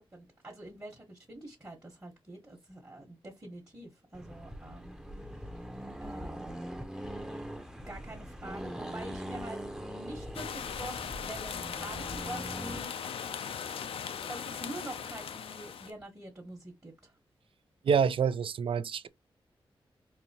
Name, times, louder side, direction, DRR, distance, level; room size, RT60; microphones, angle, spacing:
voice 1, 0.1-4.9 6.0-6.6 7.8-12.9 14.3-17.1, right 1 dB, 30° right, 1.3 m, -46 dB
Accelerating revving vroom, 4.1-12.9, equal, 5° right, 0.7 m, -42 dB
sound 1, 10.3-15.9, left 7 dB, 85° left, 0.4 m, -39 dB
voice 2, 17.8-19.1, right 6 dB, 70° right, 0.4 m, -27 dB
4.2 x 2.7 x 2.8 m
cardioid pair, 65°, 9 cm